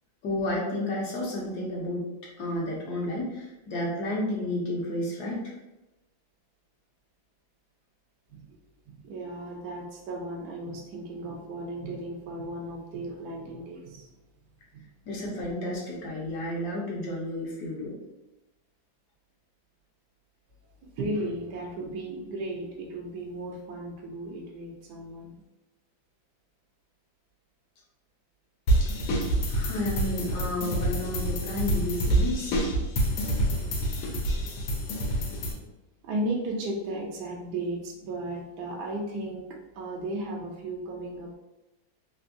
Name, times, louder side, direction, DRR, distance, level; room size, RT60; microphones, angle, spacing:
voice 1, 0.2-2.1 2.4-5.4 15.0-18.0 28.8-29.1 29.5-32.6, left 1 dB, 65° left, -3 dB, 1.1 m, -31 dB
voice 2, 8.9-14.1 14.7-14.9 20.8-25.4 36.0-39.5 39.7-41.4, right 1 dB, 75° right, 0 dB, 1.0 m, -35 dB
sound 1, 28.7-35.5, right 1 dB, 85° left, 1.5 m, -27 dB
3.5 x 2.6 x 2.5 m, 1.0 s
omnidirectional pair, 2.1 m